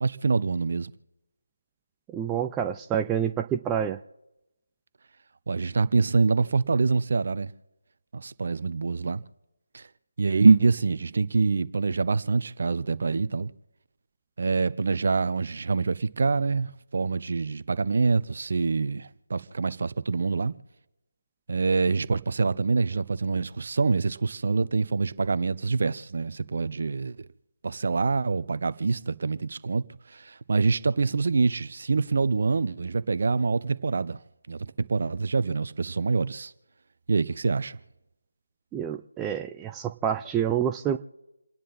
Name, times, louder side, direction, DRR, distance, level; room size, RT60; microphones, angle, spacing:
voice 1, 0.0-0.9 5.5-7.5 8.1-9.2 9.7-9.9 10.2-13.5 14.4-20.5 21.5-27.3 27.6-34.2 34.5-36.5 37.1-37.8, right 4 dB, 50° right, 0.8 m, -25 dB
voice 2, 2.1-4.0 38.7-41.0, right 9 dB, 10° right, 0.4 m, -28 dB
29.0 x 10.0 x 4.2 m
figure-of-eight pair, 160°, 0 cm